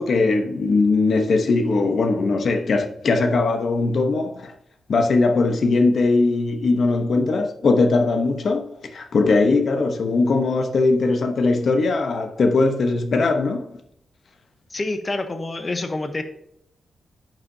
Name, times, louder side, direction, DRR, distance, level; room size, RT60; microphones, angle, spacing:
voice 1, 0.0-4.5 4.9-8.6 8.9-13.6, left 3 dB, 60° left, 1.0 m, -20 dB
voice 2, 14.7-16.2, left 2 dB, 30° left, 0.9 m, -27 dB
10.5 x 7.3 x 2.8 m
cardioid pair, 100°, 0 cm